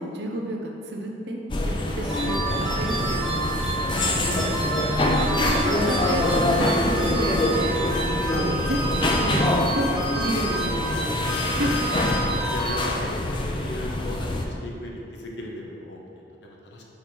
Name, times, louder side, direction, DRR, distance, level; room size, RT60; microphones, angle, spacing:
voice 1, 0.0-3.6 4.1-7.8 8.3-11.7, right 1 dB, 65° right, 1 dB, 0.7 m, -31 dB
sound 1, 1.5-14.4, left 1 dB, 25° left, 0.4 m, -25 dB
sound 2, 2.1-13.3, right 2 dB, ahead, 0.8 m, -30 dB
voice 2, 12.1-16.8, left 1 dB, 70° left, -1 dB, 0.8 m, -36 dB
5.1 x 4.2 x 4.5 m, 2.6 s
head